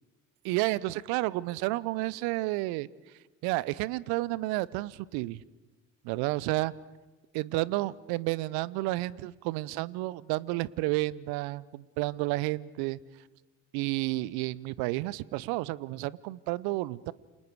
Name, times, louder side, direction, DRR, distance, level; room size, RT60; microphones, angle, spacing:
voice 1, 0.4-2.9 3.4-5.4 6.0-6.7 7.3-13.0 13.7-17.1, right 19 dB, 65° right, 22 dB, 0.7 m, -31 dB
28.5 x 27.0 x 4.7 m, 1.2 s
figure-of-eight pair, 45°, 40 cm